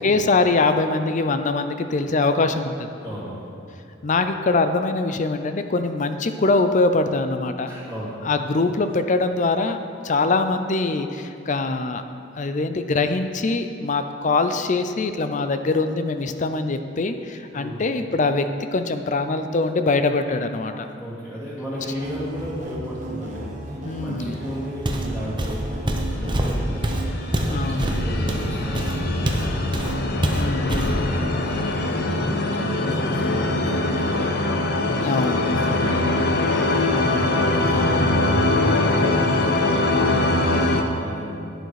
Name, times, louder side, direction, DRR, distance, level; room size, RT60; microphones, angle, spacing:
voice 1, 0.0-2.9 4.0-7.7 8.3-9.8 10.0-12.0 12.4-18.5 18.7-20.9 23.8-24.3 27.5-27.9 30.3-31.0 35.0-35.4, left 3 dB, 40° left, 8 dB, 0.5 m, -23 dB
voice 2, 3.0-3.5 7.7-8.2 17.5-17.8 20.9-27.0 27.4-30.0 30.4-41.5, equal, 5° left, -11 dB, 2.6 m, -35 dB
sound 1, 21.8-30.1, right 2 dB, 40° right, 1.3 m, -35 dB
Walk footsteps, 24.8-25.1 25.4-29.5 29.7-30.0 30.2-31.0, right 1 dB, 25° right, 0.9 m, -24 dB
sound 2, 26.5-40.8, left 2 dB, 55° left, 0.9 m, -22 dB
11.0 x 9.2 x 4.8 m, 2.6 s
head